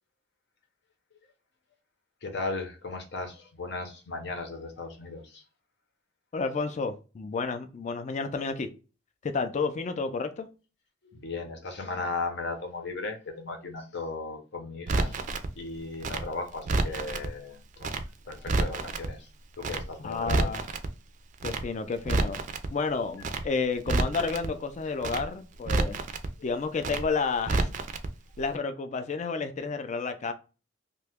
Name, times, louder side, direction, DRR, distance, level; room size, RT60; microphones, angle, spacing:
voice 1, 2.2-5.4 11.0-15.2 15.5-18.0 18.3-19.3 19.6-20.5, left 3 dB, 65° left, 0.8 m, -36 dB
voice 2, 6.3-8.7 9.2-10.5 20.0-20.7 21.4-22.4 22.7-26.0 26.4-27.7 28.4-30.3, left 4 dB, 40° left, 0.4 m, -31 dB
Crackle, 14.9-15.5 16.0-17.3 17.8-18.0 18.3-19.1 19.6-19.8 20.1-20.9 21.4-21.6 21.9-22.7 23.2-23.4 23.7-24.5 25.0-25.2 25.5-26.3 26.8-27.0 27.3-28.1 28.3-28.5, right 3 dB, 40° right, 0.4 m, -29 dB
2.8 x 2.2 x 3.4 m
head